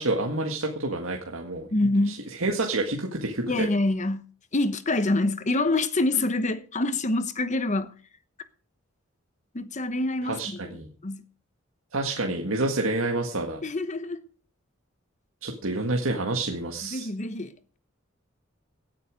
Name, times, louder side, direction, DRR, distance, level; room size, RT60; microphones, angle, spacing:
voice 1, 0.0-1.7 2.1-3.7 10.3-10.9 11.9-13.6 15.4-17.1, right 2 dB, 90° right, 1.8 m, -28 dB
voice 2, 1.7-2.1 3.5-4.3 4.5-7.9 9.5-11.2 13.6-14.2 16.8-17.5, left 2 dB, 35° left, 1.0 m, -26 dB
17.5 x 9.7 x 5.0 m
head